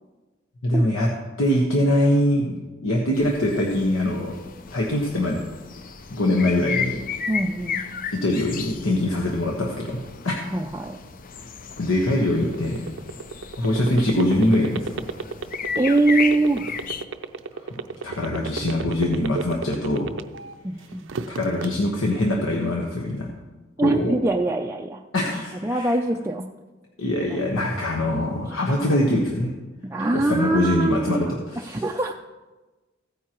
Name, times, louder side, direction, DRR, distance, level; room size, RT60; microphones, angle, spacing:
voice 1, 0.6-1.1 1.4-2.6 2.8-4.4 4.7-5.4 6.1-7.0 8.1-10.0 10.2-10.3 11.8-12.9 13.6-15.0 17.5-17.7 18.0-20.2 21.3-23.3 23.8-24.2 25.1-25.9 27.0-29.5 30.1-31.8, left 1 dB, 80° left, -1 dB, 1.3 m, -23 dB
sound 1, 3.1-17.0, left 6 dB, 45° left, 0.5 m, -34 dB
voice 2, 7.3-8.0 10.5-11.0 15.8-16.6 20.6-21.1 23.8-25.0 25.6-26.4 27.3-27.4 29.8-31.3 31.6-32.1, right 2 dB, 15° right, 0 dB, 0.4 m, -23 dB
sound 2, 12.3-20.5 20.9-21.7, right 4 dB, 65° right, 0.5 m, -31 dB
15.5 x 9.3 x 3.0 m, 1.2 s
head